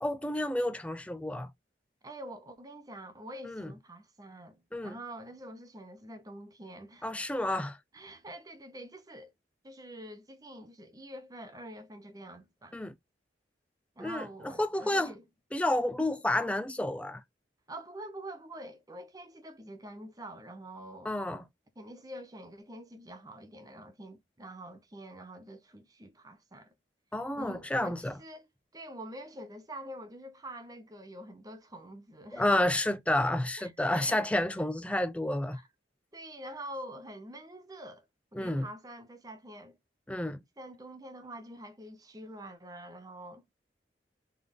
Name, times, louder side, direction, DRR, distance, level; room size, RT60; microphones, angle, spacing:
voice 1, 0.0-1.5 3.5-3.7 4.7-5.0 7.0-7.8 12.7-12.9 14.0-15.1 15.5-17.2 21.0-21.4 27.1-28.1 32.3-35.6 38.3-38.7 40.1-40.4, left 1 dB, 5° left, 0.4 m, -30 dB
voice 2, 2.0-7.2 7.9-9.3 9.6-12.8 14.0-15.2 17.7-21.2 21.8-26.7 27.4-28.5 28.7-32.5 33.6-34.2 35.5-35.7 36.1-38.1 38.3-39.8 40.6-43.4, right 1 dB, 20° right, 0.8 m, -46 dB
3.6 x 3.3 x 3.8 m
head